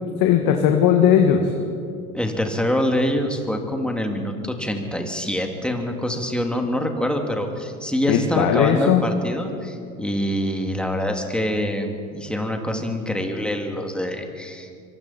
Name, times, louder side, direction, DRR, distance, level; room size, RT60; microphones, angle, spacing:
voice 1, 0.2-1.5 8.1-9.0, left 9 dB, 50° left, 3 dB, 2.1 m, -17 dB
voice 2, 2.1-14.7, equal, ahead, 3 dB, 3.0 m, -25 dB
25.0 x 24.0 x 4.5 m, 2.4 s
hypercardioid pair, 90°, 44 cm